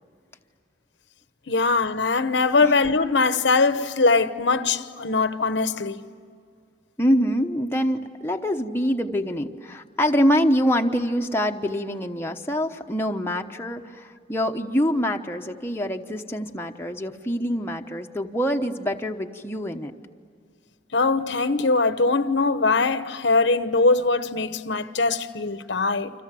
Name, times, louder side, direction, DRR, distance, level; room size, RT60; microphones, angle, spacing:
voice 1, 1.5-6.0 20.9-26.1, left 3 dB, 70° left, 1.0 m, -21 dB
voice 2, 7.0-19.9, equal, 10° left, 1.0 m, -25 dB
29.5 x 26.0 x 7.6 m
head